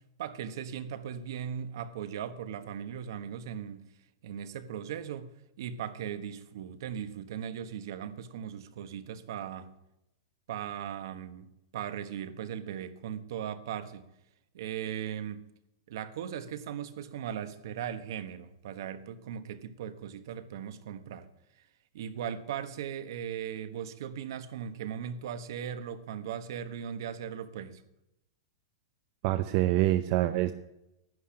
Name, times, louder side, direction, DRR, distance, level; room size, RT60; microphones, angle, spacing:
voice 1, 0.2-3.8 4.2-5.3 5.6-9.7 10.5-14.1 14.5-15.5 15.9-21.3 21.9-27.8, right 9 dB, 60° right, 1.2 m, -38 dB
voice 2, 29.2-30.5, right 15 dB, 40° right, 0.6 m, -26 dB
11.0 x 10.0 x 8.8 m
supercardioid pair, 170°, 2 cm